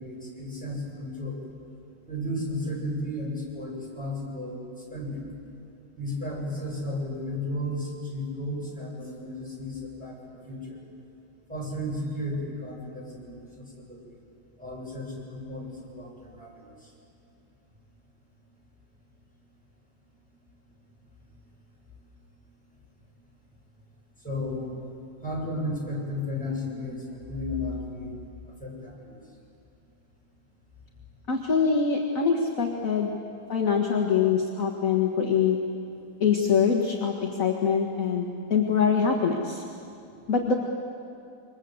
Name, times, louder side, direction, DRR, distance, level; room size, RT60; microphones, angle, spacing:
voice 1, 0.0-1.4 2.1-5.3 6.0-10.8 11.5-14.0 14.6-16.7 24.2-24.7 25.2-28.2 28.6-29.2, left 1 dB, 5° left, -4 dB, 7.6 m, -34 dB
voice 2, 31.3-33.1 33.5-35.6 36.2-39.6 40.3-40.5, left 6 dB, 40° left, 0 dB, 2.1 m, -24 dB
28.0 x 24.5 x 8.1 m, 2.5 s
omnidirectional pair, 2.4 m